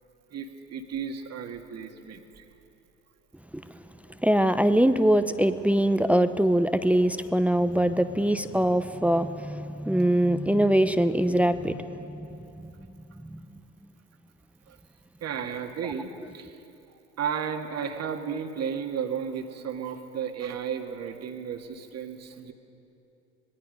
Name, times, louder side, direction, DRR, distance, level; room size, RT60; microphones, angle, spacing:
voice 1, 0.3-2.5 14.7-14.8 15.2-16.6 16.9-22.5, right 7 dB, 45° right, 5 dB, 2.0 m, -34 dB
voice 2, 4.2-12.4 13.3-13.4, right 1 dB, 5° right, 11 dB, 0.8 m, -23 dB
25.0 x 20.0 x 5.3 m, 2.9 s
hypercardioid pair, 70°, 35 cm